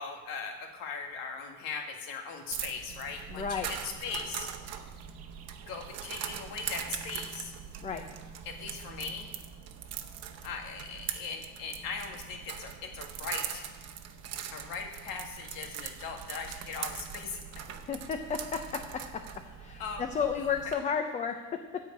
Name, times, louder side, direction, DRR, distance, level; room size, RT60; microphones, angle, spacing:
voice 1, 0.0-4.5 5.6-7.5 8.5-9.3 10.4-13.7 14.5-17.9 19.8-20.0, left 5 dB, 75° left, 3 dB, 1.9 m, -39 dB
sound 1, 2.5-20.7, right 9 dB, 45° right, 0.9 m, -41 dB
voice 2, 3.3-3.7 7.8-8.0 17.9-19.2 19.6-21.8, left 6 dB, 20° left, 6 dB, 0.5 m, -33 dB
14.0 x 4.8 x 8.5 m, 1.3 s
cardioid pair, 170°, 35 cm